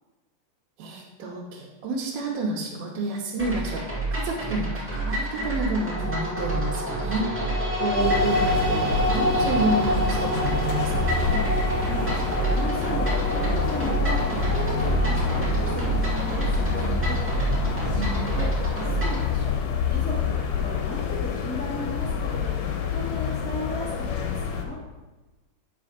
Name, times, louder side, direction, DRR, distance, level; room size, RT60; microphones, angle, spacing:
voice 1, 0.8-11.4 17.9-18.3, right 2 dB, 85° right, -4 dB, 3.0 m, -30 dB
sound 1, 3.4-19.3, right 2 dB, 15° right, 0.4 m, -28 dB
sound 2, 5.9-18.2, equal, 55° right, 2.2 m, -29 dB
sound 3, 8.0-24.6, left 6 dB, 70° left, 2.4 m, -28 dB
voice 2, 11.7-14.2 14.5-17.2 17.8-18.5 18.8-19.5 19.9-20.3 20.6-22.5 22.9-24.8, left 1 dB, 5° left, -9 dB, 1.0 m, -36 dB
8.8 x 5.6 x 5.2 m, 1.1 s
omnidirectional pair, 4.2 m